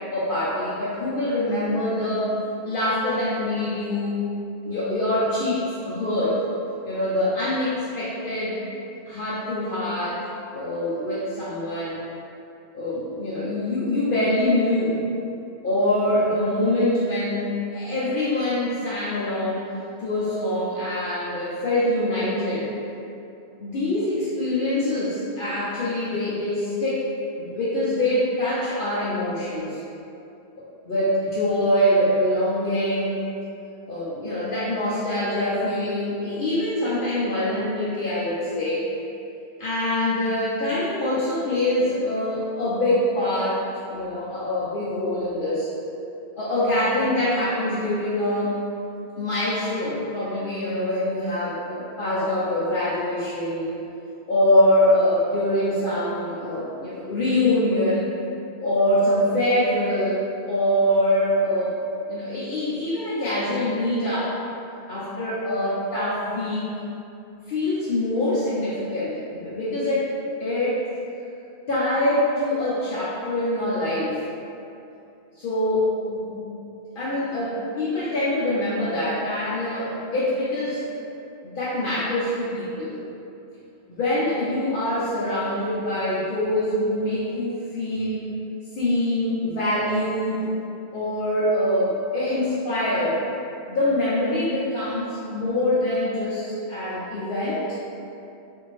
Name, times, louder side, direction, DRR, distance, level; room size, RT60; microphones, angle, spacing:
voice 1, 0.1-2.3 2.6-4.2 4.7-6.4 6.8-8.5 9.1-10.2 10.5-12.0 12.7-15.0 15.6-19.7 20.0-22.7 23.6-27.0 27.4-29.8 30.9-33.3 33.9-38.9 39.6-43.6 43.9-45.7 46.4-48.5 49.2-53.7 54.3-58.0 58.6-60.2 60.5-61.7 62.1-64.3 64.9-66.7 67.5-70.1 70.4-70.8 71.7-74.2 75.4-76.4 77.0-81.0 81.4-83.0 83.9-88.2 88.8-90.5 90.9-93.2 93.7-97.8, left 1 dB, 60° left, -10 dB, 0.7 m, -24 dB
2.6 x 2.5 x 3.0 m, 2.7 s
omnidirectional pair, 1.0 m